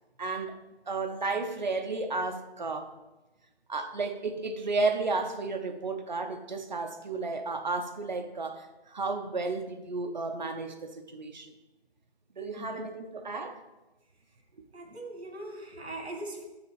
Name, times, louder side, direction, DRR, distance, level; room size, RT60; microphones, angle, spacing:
voice 1, 0.2-0.6 0.9-2.9 3.7-11.5 12.4-13.6, right 3 dB, 45° right, 6 dB, 0.6 m, -33 dB
voice 2, 12.6-12.9 14.7-16.4, right 2 dB, 80° right, 2 dB, 1.9 m, -40 dB
5.8 x 4.0 x 5.8 m, 1.1 s
figure-of-eight pair, 170°, 32 cm